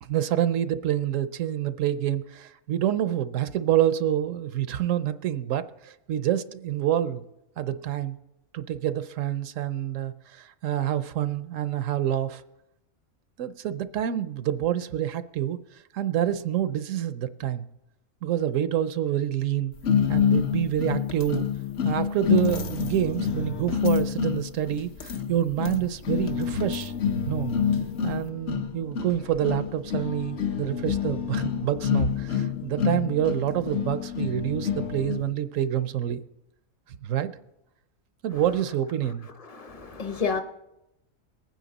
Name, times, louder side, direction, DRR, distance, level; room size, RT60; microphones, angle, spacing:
voice 1, 0.0-7.2 7.6-8.2 8.5-12.4 13.4-15.6 15.9-17.7 18.2-19.7 20.1-21.5 21.8-26.9 27.3-27.5 28.0-36.2 37.0-37.3 38.2-39.3, right 11 dB, 70° right, 12 dB, 1.0 m, -27 dB
sound 1, 19.8-35.3, left 7 dB, 55° left, 1.0 m, -27 dB
voice 2, 39.5-40.4, left 5 dB, 30° left, 7 dB, 0.9 m, -29 dB
22.0 x 9.4 x 4.0 m, 0.90 s
omnidirectional pair, 1.4 m